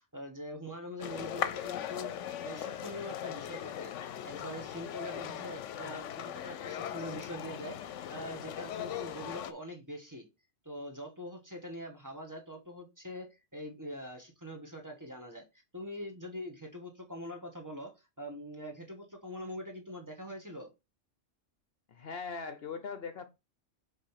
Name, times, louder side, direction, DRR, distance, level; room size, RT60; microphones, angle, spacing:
voice 1, 0.0-2.1 2.4-3.9 4.2-10.3 10.6-15.4 15.7-20.7, equal, 15° right, 2 dB, 1.2 m, -43 dB
sound 1, 1.0-9.5, left 10 dB, 80° left, 0.9 m, -39 dB
voice 2, 21.9-23.3, left 5 dB, 60° left, 10 dB, 0.9 m, -40 dB
5.1 x 3.9 x 5.7 m, 0.25 s
omnidirectional pair, 1.2 m